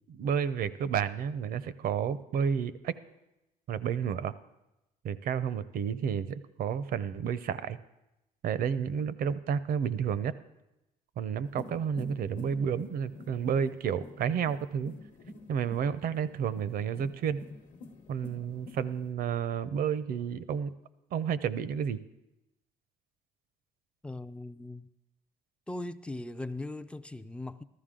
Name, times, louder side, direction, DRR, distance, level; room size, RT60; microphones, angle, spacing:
voice 1, 0.1-3.0 3.7-4.3 5.0-7.8 8.4-10.3 11.2-14.9 15.5-17.4 18.1-20.7 21.1-22.0, right 7 dB, 60° right, 0.6 m, -31 dB
sound 1, 11.4-19.1, left 3 dB, 45° left, 1.0 m, -48 dB
voice 2, 24.0-24.9 25.7-27.6, left 2 dB, 5° left, 0.4 m, -39 dB
14.5 x 13.0 x 3.7 m
cardioid pair, 110°, 17 cm